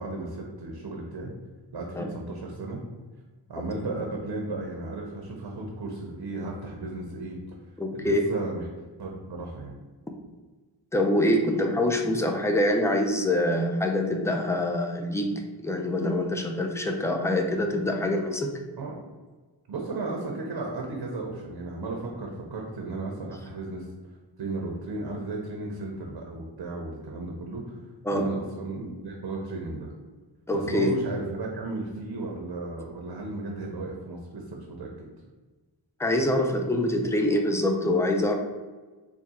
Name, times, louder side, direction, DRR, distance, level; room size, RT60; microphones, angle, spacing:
voice 1, 0.0-1.3 1.7-2.8 3.5-7.4 7.9-8.7 9.0-9.8 18.8-19.0 19.7-23.9 24.4-27.7 28.1-29.9 30.5-35.1, right 2 dB, 65° right, 0 dB, 0.8 m, -34 dB
voice 2, 7.8-8.2 10.9-15.3 15.6-18.5 28.0-28.3 30.5-30.9 36.0-38.3, left 1 dB, 5° left, 3 dB, 0.4 m, -25 dB
3.6 x 2.3 x 4.1 m, 1.3 s
cardioid pair, 65°, 45 cm